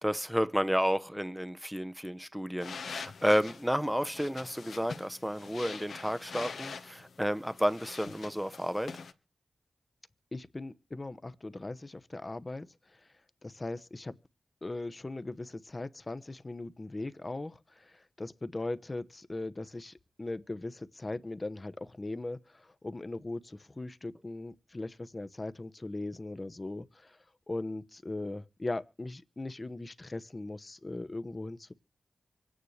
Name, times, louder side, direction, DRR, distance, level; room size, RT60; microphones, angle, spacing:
voice 1, 0.0-9.0, equal, ahead, 0.7 m, -31 dB
sound 1, 2.6-9.1, left 5 dB, 85° left, 1.3 m, -44 dB
voice 2, 10.3-13.1 13.4-14.2 14.6-27.2 27.5-31.7, left 2 dB, 30° left, 0.9 m, -39 dB
25.0 x 9.5 x 3.3 m
wide cardioid pair, 80°, 0 cm